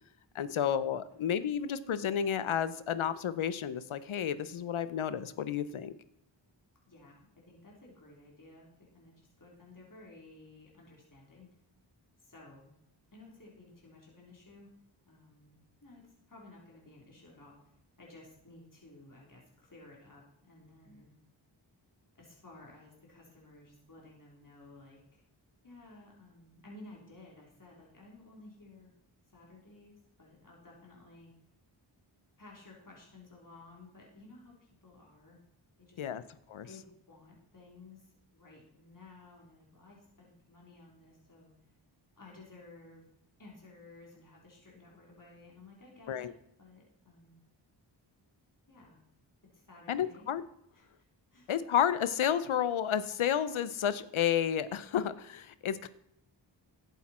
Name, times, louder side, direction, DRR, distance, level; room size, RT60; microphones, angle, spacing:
voice 1, 0.3-5.9 36.0-36.2 36.5-36.7 46.1-46.3 49.9-50.4 51.5-55.9, left 9 dB, 90° left, 15 dB, 0.7 m, -31 dB
voice 2, 6.9-11.5 12.2-12.7 13.1-14.7 15.1-21.1 22.2-25.2 25.6-28.9 29.3-31.3 32.4-35.4 35.8-36.2 36.6-41.5 42.2-43.1 43.4-46.3 46.6-47.4 48.7-49.0 49.5-50.3 50.7-51.1 51.3-51.5, left 2 dB, 40° left, -3 dB, 3.6 m, -55 dB
11.5 x 8.2 x 4.3 m, 0.77 s
cardioid pair, 40°, 47 cm